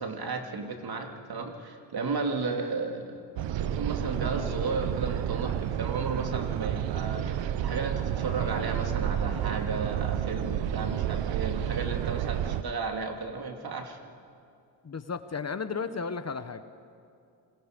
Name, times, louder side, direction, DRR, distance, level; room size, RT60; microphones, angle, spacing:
voice 1, 0.0-3.2 3.6-14.0, right 4 dB, 55° right, 4 dB, 2.8 m, -34 dB
sound 1, 3.4-12.6, right 10 dB, 80° right, 0.8 m, -30 dB
voice 2, 14.8-16.6, left 5 dB, 35° left, 11 dB, 1.2 m, -34 dB
27.0 x 21.5 x 5.3 m, 2.4 s
supercardioid pair, 60°, 44 cm